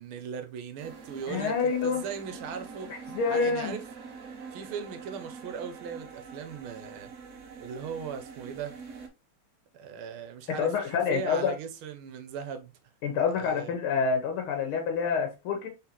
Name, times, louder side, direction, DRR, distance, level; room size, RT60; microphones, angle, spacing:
voice 1, 0.0-3.0 3.3-3.8 4.5-7.1 7.6-8.7 9.7-12.7 13.3-13.7, right 7 dB, 80° right, 1.5 m, -38 dB
sound 1, 0.8-9.1, right 5 dB, 65° right, 0.7 m, -45 dB
voice 2, 1.3-2.0 3.1-3.8 10.6-11.5 13.0-15.7, left 6 dB, 90° left, 1.7 m, -27 dB
3.9 x 3.9 x 2.9 m
omnidirectional pair, 2.3 m